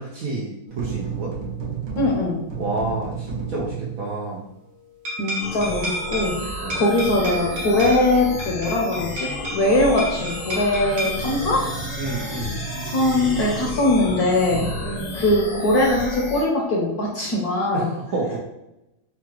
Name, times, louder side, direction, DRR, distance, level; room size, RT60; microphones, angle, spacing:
voice 1, 0.0-1.3 2.6-4.4 6.6-6.9 12.0-12.7 14.8-15.2 17.7-18.4, right 3 dB, 85° right, -5 dB, 0.7 m, -29 dB
sound 1, 0.7-4.3 5.0-15.0, right 2 dB, 60° right, 1.2 m, -32 dB
voice 2, 2.0-2.4 5.2-11.7 12.8-14.7 15.1-17.9, left 1 dB, 65° left, -2 dB, 1.0 m, -21 dB
sound 2, 5.4-16.4, left 2 dB, 80° left, 1.6 m, -33 dB
4.7 x 2.3 x 3.0 m, 0.89 s
omnidirectional pair, 2.2 m